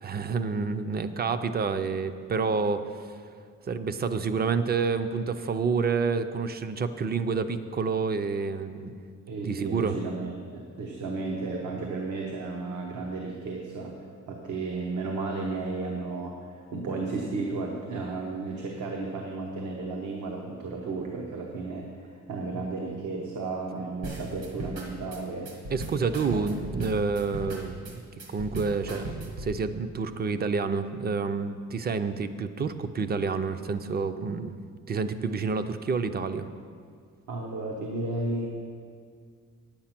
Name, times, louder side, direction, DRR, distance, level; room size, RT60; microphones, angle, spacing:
voice 1, 0.0-3.2 3.7-9.0 9.4-9.9 25.7-28.0 28.3-34.6 34.9-36.5, right 5 dB, 35° right, 11 dB, 0.4 m, -29 dB
voice 2, 9.3-13.9 14.3-25.5 26.3-26.5 37.3-38.5, right 3 dB, 80° right, -1 dB, 1.1 m, -33 dB
sound 1, 24.0-29.5, right 1 dB, 55° right, 1.4 m, -38 dB
8.7 x 8.7 x 5.9 m, 2.1 s
wide cardioid pair, 170°, 30 cm